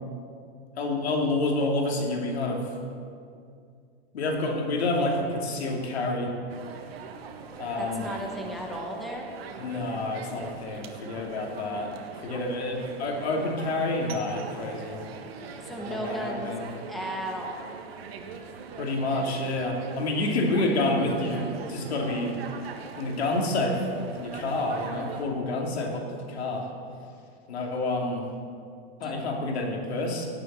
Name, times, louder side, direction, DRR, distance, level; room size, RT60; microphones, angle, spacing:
voice 1, 0.8-2.6 4.1-6.3 7.6-8.1 9.6-11.9 12.2-15.0 15.9-16.7 18.8-22.3 23.0-26.7 27.5-28.2 29.0-30.3, left 2 dB, 85° left, 1 dB, 2.9 m, -28 dB
sound 1, 6.5-25.2, right 5 dB, 70° right, 1.7 m, -42 dB
voice 2, 7.8-9.3 15.6-16.5 16.9-17.6 29.0-29.2, equal, ahead, 0 dB, 1.2 m, -35 dB
17.5 x 7.2 x 7.5 m, 2.3 s
supercardioid pair, 155°, 31 cm